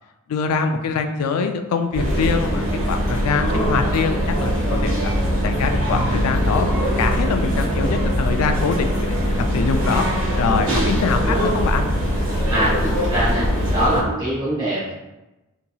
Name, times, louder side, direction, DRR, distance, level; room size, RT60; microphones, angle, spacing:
voice 1, 0.3-5.1 5.4-11.9, left 5 dB, 85° left, 7 dB, 0.3 m, -24 dB
sound 1, 1.9-14.1, right 1 dB, 50° right, 0.9 m, -34 dB
sound 2, 1.9-14.0, equal, 75° right, 1.0 m, -22 dB
voice 2, 10.7-11.5 12.5-14.9, equal, 20° right, -12 dB, 1.0 m, -24 dB
2.8 x 2.7 x 2.3 m, 1.0 s
head